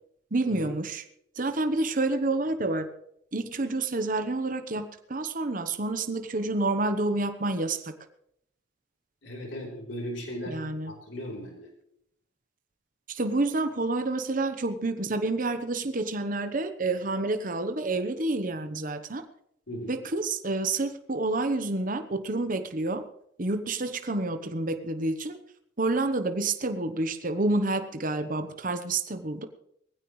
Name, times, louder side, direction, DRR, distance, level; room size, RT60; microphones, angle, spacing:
voice 1, 0.3-1.0 1.4-2.9 3.3-7.9 10.5-10.9 13.1-19.2 19.9-23.0 23.4-25.4 25.8-29.5, right 2 dB, 45° right, 8 dB, 1.0 m, -28 dB
voice 2, 9.2-10.6 10.8-11.7 19.7-20.0, equal, 80° left, 0 dB, 3.7 m, -37 dB
20.0 x 15.5 x 3.2 m, 0.73 s
head